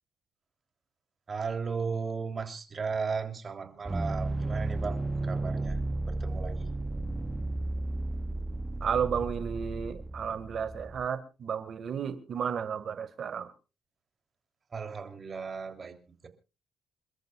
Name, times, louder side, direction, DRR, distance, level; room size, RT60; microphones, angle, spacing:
voice 1, 1.3-6.8 14.7-16.0 16.2-16.3, right 5 dB, 40° right, 3.2 m, -36 dB
sound 1, 3.9-11.1, right 2 dB, 15° right, 0.7 m, -33 dB
voice 2, 8.8-13.5, right 7 dB, 55° right, 1.8 m, -33 dB
28.5 x 13.5 x 2.4 m
cardioid pair, 90°, 0 cm